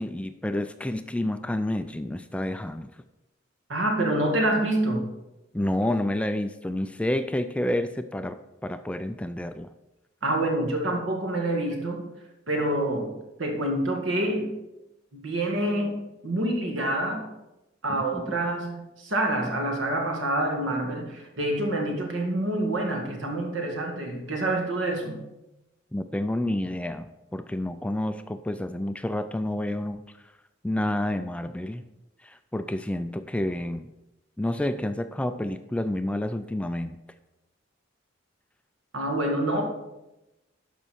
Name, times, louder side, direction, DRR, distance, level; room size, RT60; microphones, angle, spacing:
voice 1, 0.0-2.9 5.5-9.7 17.9-18.2 25.9-30.0 30.6-31.8 32.2-33.9 34.4-37.0, left 1 dB, 5° left, 10 dB, 0.3 m, -29 dB
voice 2, 3.7-5.1 10.2-12.1 12.5-14.5 15.1-17.3 17.8-25.2 38.9-39.7, right 1 dB, 75° right, 2 dB, 1.9 m, -27 dB
12.0 x 5.4 x 4.6 m, 0.96 s
head